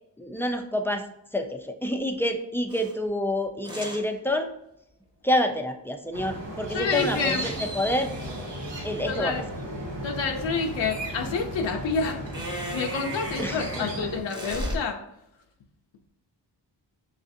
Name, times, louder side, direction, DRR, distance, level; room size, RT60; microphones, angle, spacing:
voice 1, 0.2-1.1 1.3-4.5 5.2-8.1 8.8-9.3 13.4-13.9, left 1 dB, 5° left, 5 dB, 0.3 m, -28 dB
sound 1, 2.7-2.9 3.6-4.0 6.9-9.5 12.3-14.8, right 1 dB, 10° right, 0.9 m, -36 dB
sound 2, 6.1-14.2, right 1 dB, 75° right, 1.0 m, -36 dB
voice 2, 6.7-7.4 9.1-9.4 10.0-12.4 12.7-15.0, left 5 dB, 90° left, 3 dB, 0.7 m, -28 dB
6.4 x 2.4 x 2.6 m, 0.79 s
wide cardioid pair, 100°, 43 cm